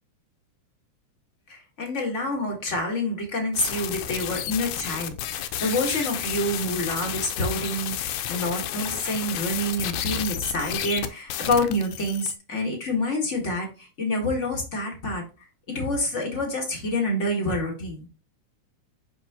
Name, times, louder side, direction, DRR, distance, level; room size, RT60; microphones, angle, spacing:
voice 1, 1.5-15.2 15.7-18.1, left 1 dB, 40° left, 1 dB, 1.1 m, -27 dB
sound 1, 3.5-12.3, left 11 dB, 85° left, 2.1 m, -31 dB
5.8 x 5.8 x 2.8 m, 0.32 s
omnidirectional pair, 3.5 m